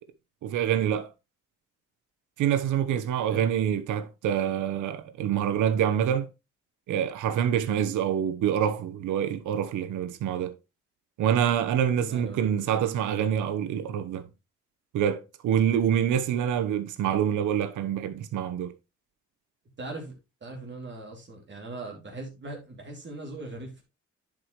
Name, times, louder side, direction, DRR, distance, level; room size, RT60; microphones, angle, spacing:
voice 1, 0.4-1.1 2.4-6.3 6.9-10.5 11.2-14.2 14.9-18.7, right 9 dB, 80° right, 1.0 m, -26 dB
voice 2, 12.0-12.5 19.8-23.8, right 2 dB, 35° right, 3.0 m, -40 dB
10.5 x 4.9 x 3.1 m
cardioid pair, 90°, 30 cm